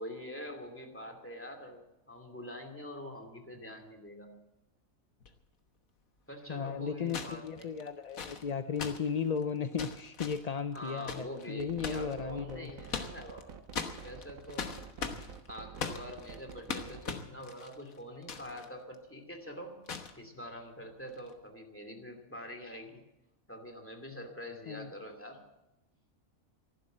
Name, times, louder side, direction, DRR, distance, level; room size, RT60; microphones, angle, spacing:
voice 1, 0.0-4.3 6.3-7.7 10.7-13.6 14.0-14.7 15.5-19.7 20.2-23.0 23.5-25.4, equal, 10° left, 4 dB, 2.5 m, -45 dB
sound 1, 5.2-5.3 7.1-12.1 12.6-13.4 13.7-18.7 18.9-19.0 19.9-20.2 21.1-21.3, left 6 dB, 85° left, 1.7 m, -40 dB
voice 2, 6.5-12.7 24.7-24.9, left 6 dB, 50° left, 9 dB, 0.5 m, -35 dB
sound 2, 11.6-17.2, right 6 dB, 85° right, 1.4 m, -48 dB
14.0 x 11.5 x 7.8 m, 0.93 s
omnidirectional pair, 1.4 m